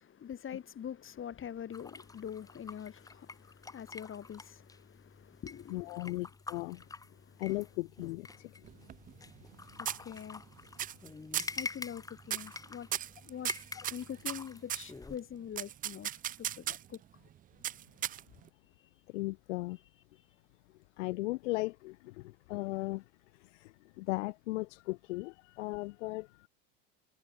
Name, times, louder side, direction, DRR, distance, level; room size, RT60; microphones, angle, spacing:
voice 1, 0.0-6.1 6.7-7.5 8.3-9.2 9.7-10.7 11.6-12.9 13.2-13.5 13.9-17.0 18.8-18.9, left 9 dB, 35° left, 7.3 m, -45 dB
sound 1, 1.7-15.2, left 3 dB, 10° left, 0.8 m, -47 dB
voice 2, 5.7-6.8 7.4-8.6 19.1-19.8 21.0-23.0 23.3-26.5, left 22 dB, 75° left, 0.6 m, -37 dB
sound 2, 8.6-9.6 9.9-10.4 10.8-11.1 11.3-11.6 12.3-12.6 12.9-14.9 15.6-17.0 17.6-18.5, right 11 dB, 25° right, 0.4 m, -37 dB
hypercardioid pair, 95°, 37 cm